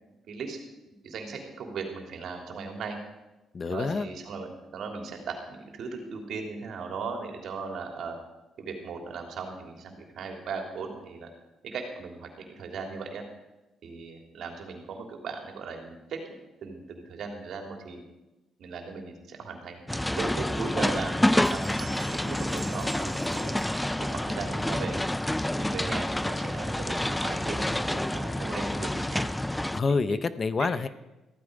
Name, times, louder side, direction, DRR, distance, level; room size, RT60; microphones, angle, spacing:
voice 1, 0.3-0.6 1.0-3.0 3.6-8.2 8.6-11.3 11.6-13.2 13.8-18.0 18.6-19.8 20.1-23.5 24.0-25.0 25.5-29.3 29.9-30.2 30.6-30.7, right 4 dB, 70° right, 2 dB, 3.2 m, -38 dB
voice 2, 3.5-4.1 29.7-30.9, left 4 dB, 40° left, 14 dB, 0.7 m, -27 dB
sound 1, 19.9-29.8, left 1 dB, 10° left, 0.4 m, -28 dB
Bell, 20.9-21.1 21.3-24.5, right 4 dB, 50° right, 2.9 m, -48 dB
15.0 x 13.5 x 5.1 m, 1.0 s
cardioid pair, 90°, 0 cm